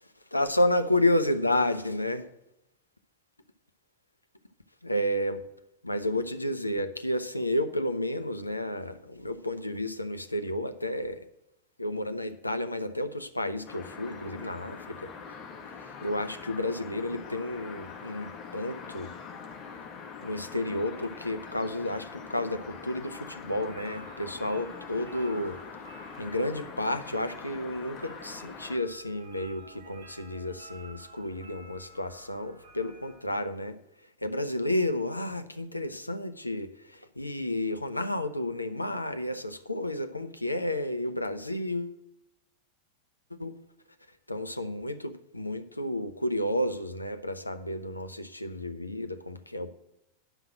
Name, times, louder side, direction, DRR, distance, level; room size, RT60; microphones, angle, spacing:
voice 1, 0.0-2.3 4.8-5.5 5.8-11.3 11.8-15.1 15.8-19.1 20.2-25.6 26.2-33.8 34.2-42.0 43.3-43.7 44.3-49.7, left 1 dB, 85° left, 10 dB, 0.6 m, -31 dB
sound 1, 13.7-28.8, left 5 dB, 30° left, 1.6 m, -44 dB
sound 2, 22.5-33.2, right 2 dB, 60° right, 2.4 m, -53 dB
9.9 x 5.8 x 7.3 m, 0.85 s
figure-of-eight pair, 90°, 0 cm